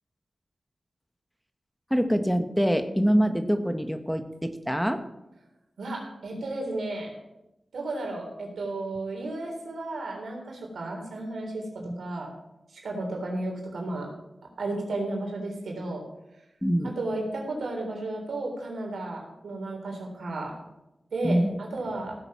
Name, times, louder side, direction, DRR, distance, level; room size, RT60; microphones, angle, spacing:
voice 1, 1.9-5.0 11.8-11.9 16.6-16.9 21.2-21.6, equal, ahead, 8 dB, 1.2 m, -25 dB
voice 2, 5.8-7.1 7.7-11.6 12.0-12.3 12.7-14.1 14.6-16.0 16.8-20.5 21.1-22.1, right 2 dB, 90° right, 0 dB, 3.7 m, -33 dB
16.5 x 7.8 x 5.9 m, 0.93 s
cardioid pair, 45°, 0 cm